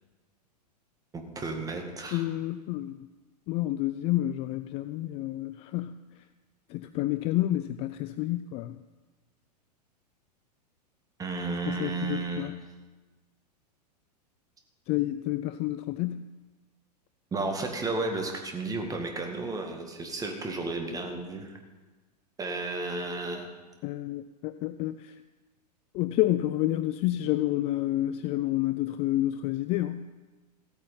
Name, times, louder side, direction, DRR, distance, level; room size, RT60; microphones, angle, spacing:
voice 1, 1.1-2.2 11.2-12.5 17.3-21.6 22.4-23.5, right 3 dB, 15° right, 3 dB, 1.9 m, -33 dB
voice 2, 2.1-3.0 3.5-6.0 6.7-8.8 11.7-12.5 14.9-16.2 23.8-25.1 25.9-30.1, left 15 dB, 30° left, 12 dB, 0.4 m, -29 dB
15.5 x 8.9 x 5.6 m, 1.2 s
figure-of-eight pair, 95°, 21 cm